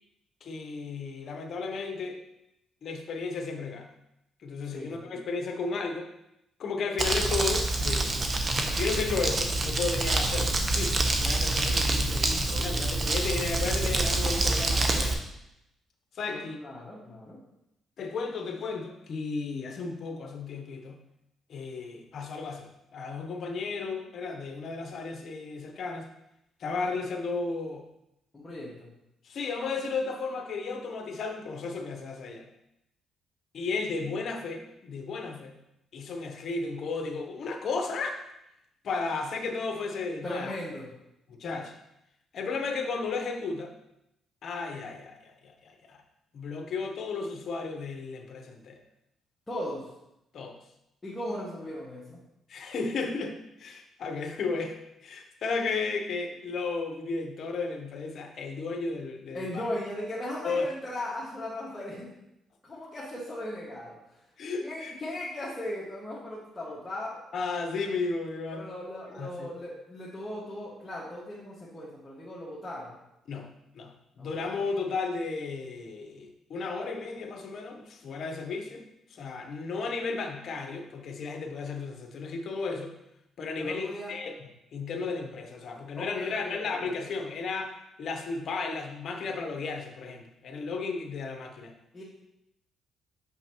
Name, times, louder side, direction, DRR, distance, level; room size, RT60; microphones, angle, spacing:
voice 1, 0.4-2.2 2.8-3.9 4.4-6.1 6.6-8.2 8.7-15.2 16.1-16.6 18.0-21.0 21.5-26.1 26.6-27.8 29.2-32.5 33.5-35.5 35.9-38.2 38.8-40.5 41.3-41.7 42.3-43.7 44.4-46.0 46.3-48.8 50.3-50.6 52.5-54.8 55.0-59.6 60.4-60.7 64.4-64.9 67.3-68.7 69.1-69.5 73.3-73.5 73.7-78.8 79.1-82.9 83.4-91.7, left 4 dB, 60° left, 4 dB, 0.8 m, -34 dB
Crumpling crinkling, 7.0-15.1, right 2 dB, 40° right, 0.9 m, -27 dB
voice 2, 16.3-17.4 28.3-28.9 40.2-40.9 49.5-49.9 51.0-52.2 59.3-62.2 62.6-64.0 64.6-67.2 68.5-72.9 74.2-74.3 83.6-84.1 85.0-85.1 86.0-86.8 91.9-92.0, left 1 dB, 20° left, -7 dB, 1.7 m, -38 dB
6.6 x 5.7 x 3.0 m, 0.84 s
cardioid pair, 90°, 0 cm